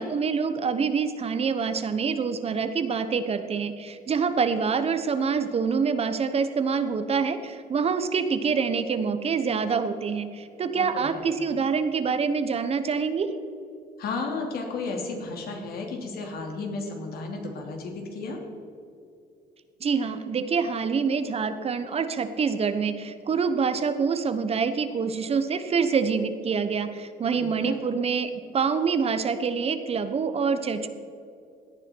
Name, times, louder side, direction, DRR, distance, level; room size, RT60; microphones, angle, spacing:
voice 1, 0.0-13.3 19.8-30.9, right 5 dB, 35° right, 10 dB, 0.9 m, -26 dB
voice 2, 10.7-11.3 14.0-18.4 27.3-27.8, left 3 dB, 65° left, 2 dB, 2.7 m, -33 dB
17.5 x 9.7 x 4.5 m, 2.5 s
cardioid pair, 110°, 17 cm